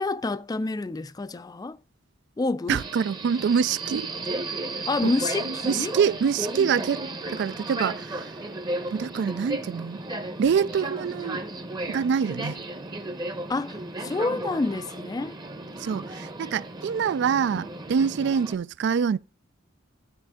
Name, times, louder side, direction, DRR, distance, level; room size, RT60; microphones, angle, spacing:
voice 1, 0.0-1.8 2.4-2.8 4.9-6.0 13.5-15.3, left 3 dB, 20° left, 0.3 m, -28 dB
voice 2, 2.7-4.1 5.0-5.1 5.6-7.0 7.3-8.3 8.9-10.0 10.4-11.4 11.9-12.6 15.8-19.2, right 7 dB, 60° right, 0.3 m, -25 dB
Subway metro underground, 2.8-18.5, right 2 dB, 20° right, 0.8 m, -34 dB
13.0 x 5.0 x 3.6 m
head